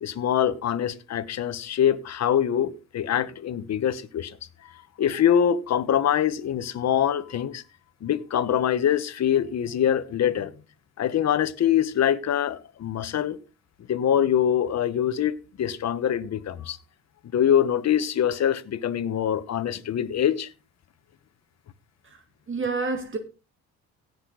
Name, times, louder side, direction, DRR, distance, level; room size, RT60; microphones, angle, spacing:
voice 1, 0.0-4.4 4.6-4.7 5.0-7.6 8.0-10.5 11.0-13.4 13.9-16.8 17.2-20.5, left 9 dB, 60° left, 1.3 m, -24 dB
voice 2, 22.5-23.2, right 4 dB, 40° right, 2.1 m, -28 dB
16.5 x 6.8 x 4.0 m
cardioid pair, 90°, 30 cm